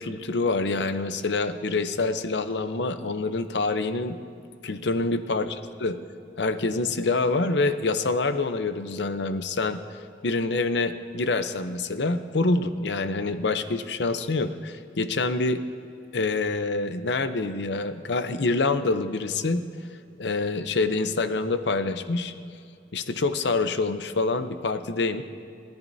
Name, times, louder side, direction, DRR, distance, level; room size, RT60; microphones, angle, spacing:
voice 1, 0.0-4.2 4.6-5.5 5.8-5.9 6.4-9.8 10.2-15.6 16.1-19.6 20.2-22.3 22.9-25.2, left 3 dB, 75° left, 10 dB, 0.7 m, -26 dB
29.0 x 10.5 x 2.7 m, 2.5 s
head